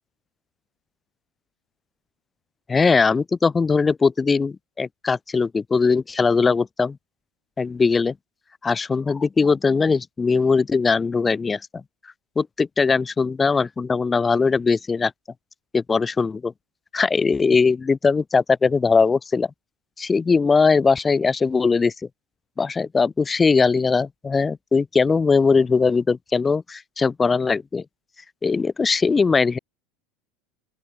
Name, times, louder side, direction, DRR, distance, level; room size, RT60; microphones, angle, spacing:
voice 1, 2.7-7.0 7.6-8.1 8.6-11.8 12.4-15.1 15.7-16.5 16.9-19.5 20.0-21.9 22.6-27.8 28.4-29.6, left 4 dB, 20° left, 7.8 m, -20 dB
open air
figure-of-eight pair, 75°, 0 cm